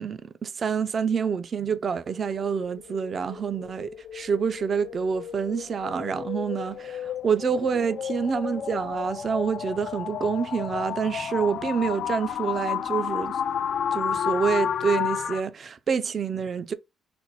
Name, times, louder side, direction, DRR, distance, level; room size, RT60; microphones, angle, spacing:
voice 1, 0.0-13.4 13.9-16.7, right 6 dB, 50° right, 0.4 m, -27 dB
sound 1, 2.2-15.4, left 8 dB, 65° left, 0.3 m, -32 dB
4.2 x 2.2 x 4.0 m
cardioid pair, 90°, 0 cm